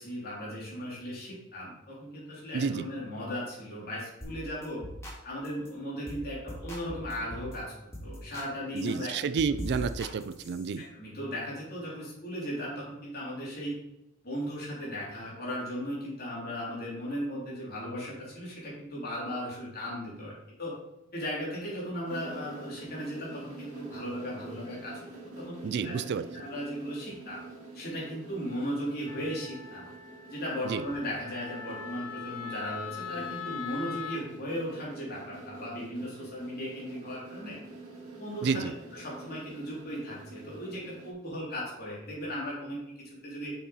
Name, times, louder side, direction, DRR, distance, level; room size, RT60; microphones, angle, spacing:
voice 1, 0.0-4.8 5.2-7.7 8.0-9.1 9.7-9.8 10.8-13.7 14.2-20.3 20.6-20.7 21.1-25.0 25.4-25.9 26.3-27.4 27.7-29.9 30.3-37.6 38.2-42.8 43.2-43.5, equal, 45° left, -5 dB, 3.2 m, -37 dB
voice 2, 2.5-2.9 8.7-10.8 25.6-26.3 30.6-30.8 38.4-38.7, right 6 dB, 50° right, 13 dB, 0.3 m, -30 dB
sound 1, 4.2-4.4 4.6-5.2 5.4-5.7 6.1-6.2 6.5-7.5 7.9-8.5 8.8-10.8, equal, 15° left, 2.0 m, -41 dB
sound 2, 22.0-41.1, right 3 dB, 75° right, 2.1 m, -47 dB
Wind instrument woodwind instrument, 29.1-34.2, left 7 dB, 85° left, 1.1 m, -41 dB
6.9 x 6.0 x 4.2 m, 0.89 s
head